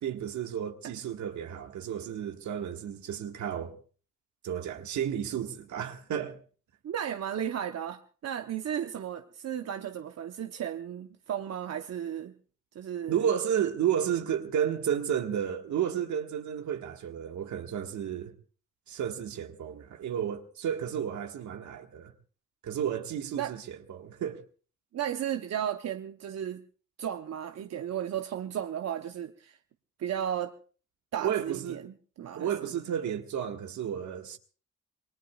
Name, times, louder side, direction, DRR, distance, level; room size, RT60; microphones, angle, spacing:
voice 1, 0.0-3.7 4.4-6.4 13.1-18.3 18.9-22.1 22.6-24.4 31.2-31.8 32.4-34.4, right 9 dB, 75° right, 1.7 m, -32 dB
voice 2, 6.8-12.3 12.7-13.2 23.4-23.5 24.9-26.6 27.0-29.6 30.0-30.5 31.1-32.7, right 9 dB, 60° right, 0.9 m, -34 dB
27.5 x 19.5 x 2.4 m
cardioid pair, 75°, 29 cm